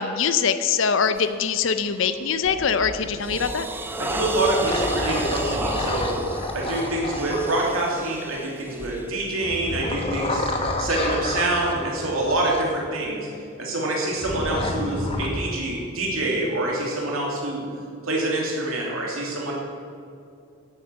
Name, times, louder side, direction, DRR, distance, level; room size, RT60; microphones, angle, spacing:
voice 1, 0.0-3.7, left 6 dB, 70° left, 10 dB, 0.6 m, -23 dB
Ghastly Groan, 1.1-1.4 1.9-2.2 2.6-10.7, right 2 dB, 10° right, 0.5 m, -34 dB
sound 1, 2.4-3.4 3.9-8.2 9.4-12.6 14.2-15.3, left 2 dB, 25° left, 1.1 m, -29 dB
voice 2, 4.0-6.2 6.5-13.3 13.6-17.6 18.0-19.5, right 2 dB, 85° right, -2 dB, 2.9 m, -26 dB
11.0 x 8.7 x 7.4 m, 2.4 s
head